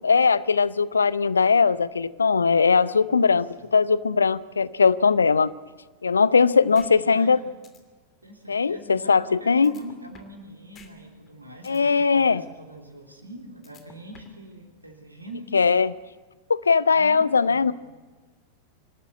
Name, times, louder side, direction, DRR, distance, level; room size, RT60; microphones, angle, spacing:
voice 1, 0.0-3.5 3.7-5.5 6.0-7.4 8.5-9.7 11.7-12.4 15.5-15.9 16.5-17.7, left 5 dB, 75° left, 19 dB, 0.6 m, -20 dB
voice 2, 2.9-3.7 6.6-7.4 8.2-15.5 16.9-17.7, right 1 dB, 85° right, 3 dB, 3.5 m, -44 dB
sound 1, 6.7-6.9 7.3-7.4 7.6-7.8 9.6-10.4 10.7-10.9 11.3-11.8 13.6-14.4, left 6 dB, 25° left, 2.7 m, -50 dB
25.5 x 13.0 x 9.5 m, 1.3 s
figure-of-eight pair, 90°, 0 cm